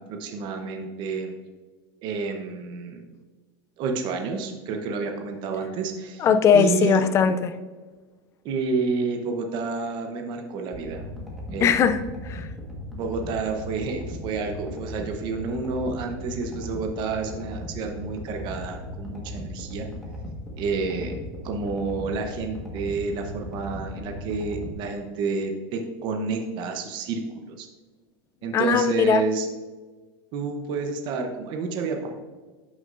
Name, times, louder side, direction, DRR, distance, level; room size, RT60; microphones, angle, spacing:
voice 1, 0.1-1.3 2.0-3.0 3.8-6.3 6.5-7.0 8.4-11.0 11.5-11.8 12.9-19.9 20.5-21.2 21.4-27.2 27.5-27.7 28.4-29.5 30.3-32.1, right 4 dB, 35° right, 4 dB, 0.8 m, -29 dB
voice 2, 6.2-7.6 11.6-12.5 28.5-29.2, left 7 dB, 20° left, 11 dB, 0.4 m, -20 dB
sound 1, 10.7-24.7, left 1 dB, ahead, 1.4 m, -37 dB
11.0 x 6.3 x 2.6 m, 1.3 s
supercardioid pair, 160°, 13 cm